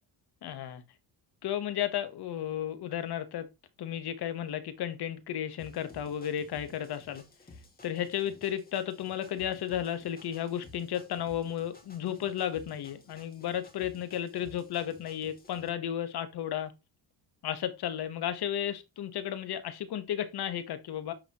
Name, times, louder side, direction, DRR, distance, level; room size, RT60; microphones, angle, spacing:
voice 1, 0.4-0.8 1.4-3.5 3.8-7.2 7.8-16.7 17.4-21.1, left 10 dB, 60° left, 1.2 m, -33 dB
sound 1, 5.6-15.7, left 2 dB, 20° left, 1.9 m, -54 dB
9.0 x 3.9 x 2.9 m
cardioid pair, 100°, 43 cm